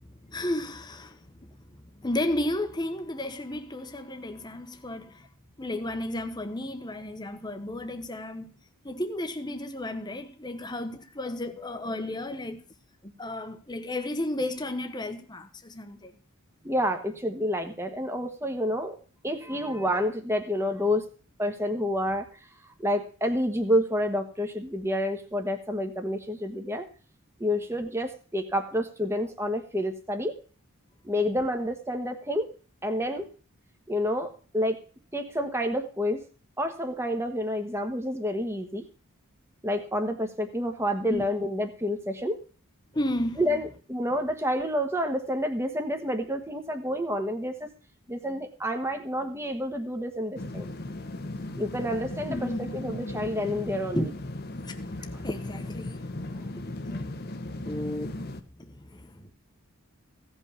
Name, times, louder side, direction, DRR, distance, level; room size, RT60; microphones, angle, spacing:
voice 1, 0.2-1.6 1.9-5.3 5.6-8.5 8.8-12.7 13.0-16.1 41.1-41.3 42.9-43.4 52.3-52.8 53.9-54.1 54.6-56.8 57.1-57.2 57.5-58.2 58.6-59.3, left 1 dB, 20° left, 1.1 m, -33 dB
voice 2, 16.6-19.0 19.2-21.0 21.4-22.3 22.8-26.9 27.4-30.4 31.0-32.5 32.8-33.3 33.9-34.8 35.1-36.2 36.6-38.8 39.6-42.4 43.4-47.7 48.1-50.7 51.6-54.0 55.1-55.2, equal, 10° right, 1.3 m, -29 dB
sound 1, 50.4-58.4, left 2 dB, 45° left, 1.0 m, -37 dB
16.5 x 5.5 x 6.9 m
head